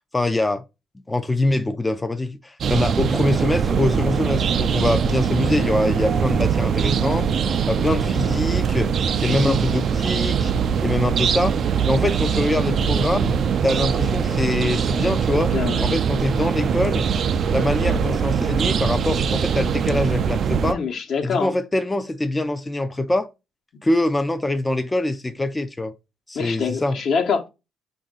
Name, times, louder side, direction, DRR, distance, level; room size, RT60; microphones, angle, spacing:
voice 1, 0.1-0.6 1.1-7.3 7.7-8.9 9.2-10.5 10.8-11.6 11.9-13.3 13.6-15.5 15.8-17.1 17.5-20.8 21.2-23.3 23.8-25.9 26.3-27.0, left 2 dB, 15° left, 0.4 m, -23 dB
sound 1, 2.6-20.7, right 7 dB, 60° right, 0.3 m, -22 dB
voice 2, 15.5-15.9 20.7-21.5 26.3-27.5, left 5 dB, 65° left, 1.0 m, -24 dB
5.2 x 2.5 x 3.8 m
cardioid pair, 90°, 0 cm